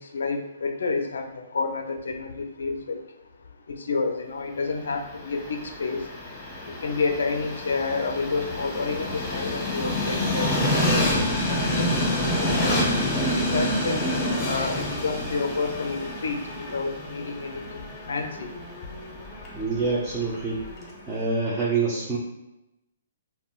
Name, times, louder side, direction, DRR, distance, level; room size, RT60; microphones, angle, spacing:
voice 1, 0.0-3.0 3.7-6.0 6.7-12.0 13.5-14.1 14.4-18.5, left 4 dB, 75° left, 5 dB, 0.4 m, -29 dB
Train, 4.9-21.0, left 1 dB, 20° left, 0.7 m, -28 dB
voice 2, 19.5-22.2, right 4 dB, 15° right, -7 dB, 0.6 m, -27 dB
3.5 x 2.1 x 2.3 m, 0.93 s
hypercardioid pair, 135°, 0 cm